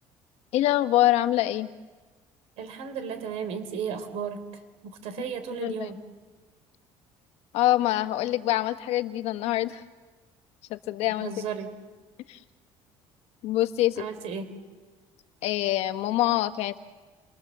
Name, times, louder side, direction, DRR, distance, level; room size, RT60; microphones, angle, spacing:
voice 1, 0.5-1.7 5.6-6.0 7.5-9.8 10.7-11.3 12.3-12.4 13.4-14.1 15.4-16.8, left 14 dB, 70° left, 10 dB, 1.3 m, -25 dB
voice 2, 2.6-4.4 4.8-6.0 11.2-11.7 14.0-14.5, right 7 dB, 70° right, 10 dB, 3.8 m, -34 dB
29.5 x 23.5 x 7.5 m, 1.3 s
cardioid pair, 140°, 11 cm